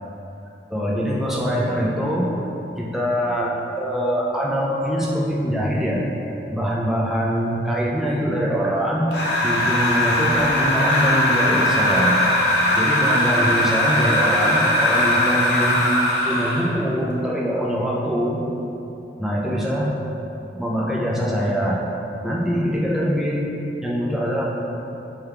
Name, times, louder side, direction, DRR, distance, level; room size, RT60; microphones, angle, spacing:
voice 1, 0.7-2.4 2.8-6.0 6.5-12.2 12.8-15.9 16.3-18.4 19.2-19.9 20.5-21.8 22.2-23.5 23.8-24.4, equal, ahead, -4 dB, 0.3 m, -23 dB
sound 1, 9.1-16.7, left 1 dB, 70° left, 0.6 m, -20 dB
3.3 x 2.3 x 4.3 m, 2.9 s
head